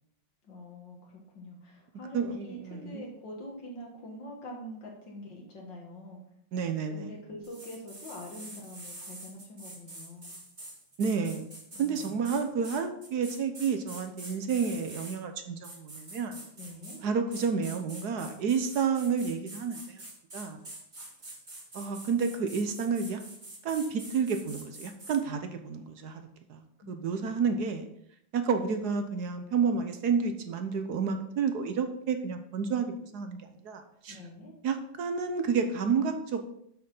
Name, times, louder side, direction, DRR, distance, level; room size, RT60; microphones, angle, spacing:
voice 1, 0.4-6.2 6.6-10.3 11.7-12.3 16.6-17.0 26.8-27.6 34.1-34.5, left 1 dB, 65° left, -1 dB, 2.2 m, -45 dB
voice 2, 2.1-3.1 6.5-7.1 11.0-11.5 11.8-16.4 17.0-20.0 20.3-20.6 21.7-23.2 23.6-26.2 26.5-27.9 28.3-34.2 34.6-36.4, right 5 dB, 60° right, 7 dB, 1.3 m, -30 dB
sound 1, 7.4-15.2 15.6-17.0 17.3-25.2, right 1 dB, 35° right, 2.9 m, -46 dB
7.7 x 6.5 x 5.4 m, 0.72 s
omnidirectional pair, 2.1 m